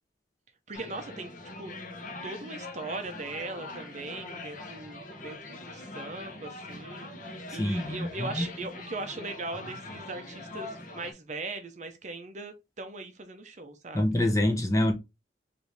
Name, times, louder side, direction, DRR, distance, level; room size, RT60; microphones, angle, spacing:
sound 1, 0.7-11.1, left 2 dB, 45° left, 0.9 m, -42 dB
voice 1, 0.7-1.7 2.2-14.1, right 3 dB, 40° right, 0.7 m, -39 dB
voice 2, 7.6-8.5 13.9-14.9, left 1 dB, 20° left, 0.7 m, -26 dB
5.1 x 2.7 x 3.2 m
head